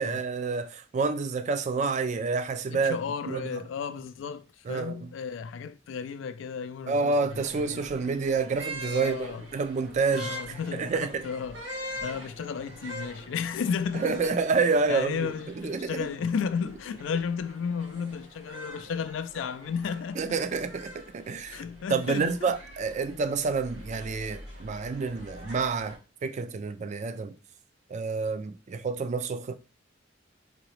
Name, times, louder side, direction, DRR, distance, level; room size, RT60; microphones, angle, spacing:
voice 1, 0.0-3.0 3.3-3.5 4.7-5.1 6.9-10.4 10.7-11.2 13.9-16.1 20.2-21.6 21.9-27.3 27.9-29.6, right 4 dB, 40° right, 0.3 m, -28 dB
voice 2, 2.7-7.8 8.8-9.5 10.1-14.4 14.9-20.4 21.5-22.6, left 6 dB, 80° left, 0.3 m, -33 dB
sound 1, 7.3-26.0, equal, 80° right, 1.6 m, -44 dB
3.9 x 2.8 x 3.1 m
head